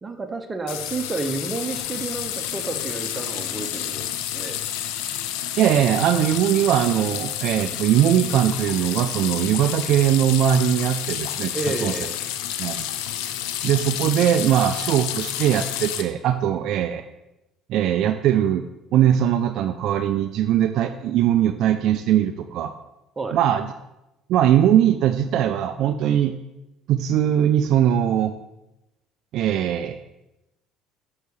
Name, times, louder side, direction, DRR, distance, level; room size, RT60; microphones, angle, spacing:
voice 1, 0.0-4.1 4.3-4.6 11.5-12.2 23.2-23.4, right 3 dB, 25° right, 6 dB, 1.0 m, -30 dB
sound 1, 0.7-16.0, left 11 dB, 75° left, 0.5 m, -30 dB
voice 2, 5.6-11.5 11.8-11.9 12.6-12.9 13.6-17.0 17.7-18.6 18.9-22.7 23.3-23.7 24.3-26.3 26.9-28.3 29.3-30.0, right 10 dB, 65° right, 9 dB, 0.3 m, -20 dB
6.7 x 4.7 x 4.8 m, 0.94 s
hypercardioid pair, 65°, 0 cm